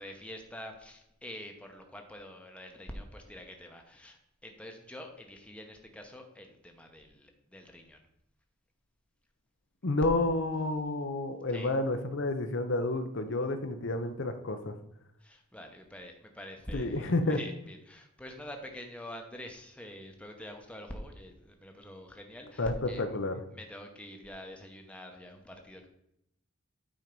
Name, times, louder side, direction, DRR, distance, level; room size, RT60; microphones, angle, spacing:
voice 1, 0.0-8.0 11.5-11.7 15.2-23.2 23.5-25.9, left 1 dB, 5° left, 3 dB, 0.9 m, -46 dB
voice 2, 9.8-14.8 16.7-17.4 22.6-23.4, left 2 dB, 60° left, 7 dB, 0.7 m, -30 dB
8.8 x 4.6 x 5.3 m, 0.78 s
head